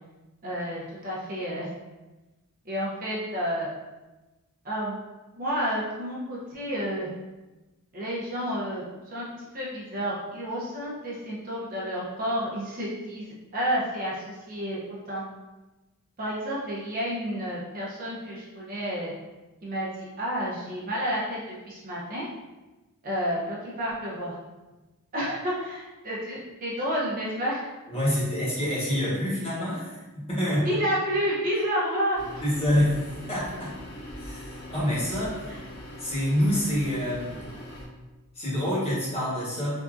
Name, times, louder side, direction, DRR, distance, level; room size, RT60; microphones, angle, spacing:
voice 1, 0.4-1.7 2.6-3.7 4.6-5.0 5.3-7.1 7.9-15.2 16.2-19.1 19.6-22.3 23.0-24.3 25.1-27.6 30.4-32.4, equal, 40° right, -5 dB, 0.6 m, -30 dB
voice 2, 27.9-30.8 32.4-33.7 34.2-35.5 36.0-37.4 38.3-39.8, equal, 25° left, -8 dB, 1.1 m, -27 dB
sound 1, 32.1-37.8, equal, 65° left, 1.5 m, -41 dB
3.4 x 2.6 x 2.4 m, 1.1 s
head